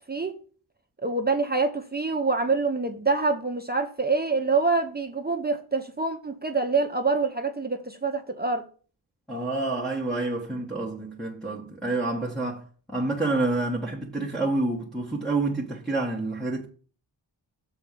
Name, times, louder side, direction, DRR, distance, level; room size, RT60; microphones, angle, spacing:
voice 1, 1.0-8.6, right 4 dB, 20° right, 0.9 m, -26 dB
voice 2, 9.3-16.7, right 2 dB, ahead, 1.6 m, -28 dB
7.1 x 4.5 x 6.9 m
wide cardioid pair, 85°, 45 cm